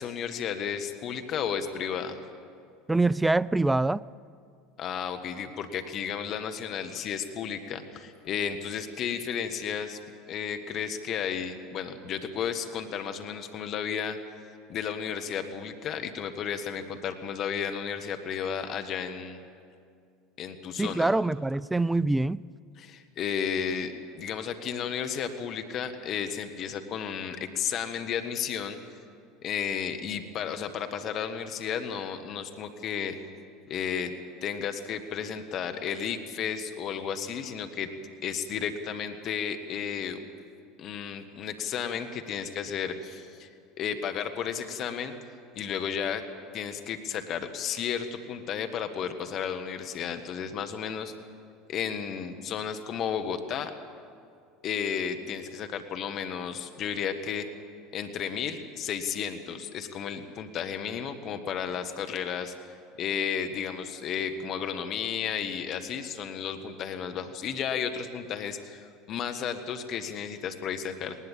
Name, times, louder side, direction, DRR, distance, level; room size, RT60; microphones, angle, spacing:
voice 1, 0.0-2.2 4.8-10.0 10.3-14.2 14.7-19.4 20.4-21.1 22.8-28.8 29.4-33.2 33.7-34.1 34.4-37.9 38.2-40.2 40.8-43.5 43.8-45.1 45.5-46.2 46.5-51.1 51.7-53.7 54.6-57.5 57.9-62.5 63.0-71.2, left 7 dB, 50° left, 6 dB, 1.8 m, -33 dB
voice 2, 2.9-4.0 20.8-22.4, right 2 dB, 10° right, 22 dB, 0.4 m, -24 dB
20.0 x 19.5 x 7.6 m, 2.3 s
hypercardioid pair, 75°, 0 cm